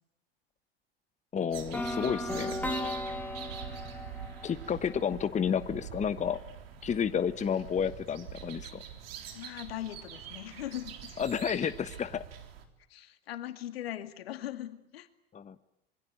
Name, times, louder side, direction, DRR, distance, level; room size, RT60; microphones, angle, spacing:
voice 1, 1.3-2.5 4.4-6.4 6.8-8.8 11.2-12.2 15.3-15.5, left 7 dB, 25° left, 12 dB, 1.2 m, -31 dB
sound 1, 1.5-12.6, right 9 dB, 70° right, 3.8 m, -45 dB
sound 2, 1.7-5.7, left 1 dB, 5° left, 4.5 m, -36 dB
voice 2, 9.3-11.2 12.9-15.1, left 13 dB, 75° left, 9 dB, 2.4 m, -40 dB
26.5 x 23.5 x 9.4 m, 0.76 s
hypercardioid pair, 90°, 30 cm